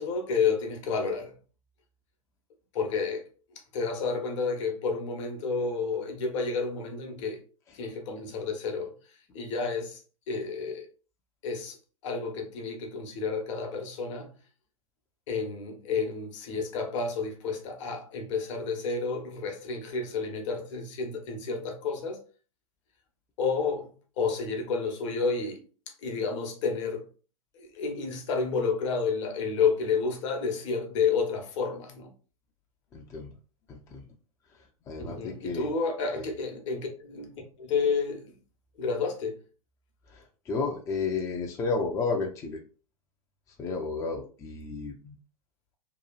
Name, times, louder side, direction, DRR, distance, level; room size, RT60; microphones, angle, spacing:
voice 1, 0.0-1.4 2.7-3.3 3.7-7.4 7.7-8.9 9.3-10.0 10.3-10.9 11.4-11.8 12.0-14.4 15.3-22.2 23.4-25.6 26.0-27.1 27.5-32.1 35.1-38.3 38.8-39.4, left 5 dB, 55° left, 0.9 m, -30 dB
voice 2, 32.9-33.3 33.7-34.0 34.9-35.7 36.2-36.3 40.1-42.6 43.6-45.2, left 4 dB, 15° left, 0.4 m, -32 dB
2.8 x 2.3 x 2.3 m
figure-of-eight pair, 100°, 18 cm